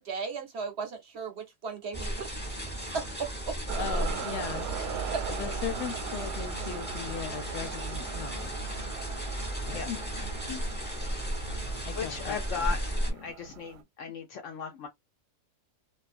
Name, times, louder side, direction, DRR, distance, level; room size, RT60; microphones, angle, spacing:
voice 1, 0.0-2.6 2.9-3.0 3.9-4.1 5.1-5.2, right 5 dB, 55° right, 0.8 m, -36 dB
sound 1, 1.9-13.1, right 1 dB, 10° left, 0.5 m, -35 dB
sound 2, 3.7-13.8, right 7 dB, 85° right, 1.2 m, -40 dB
voice 2, 3.8-4.7 5.3-8.5 9.7-10.6 11.8-12.7, left 11 dB, 85° left, 1.2 m, -38 dB
voice 3, 11.9-12.8 13.2-14.9, left 6 dB, 65° left, 0.8 m, -36 dB
2.6 x 2.4 x 2.4 m
omnidirectional pair, 1.7 m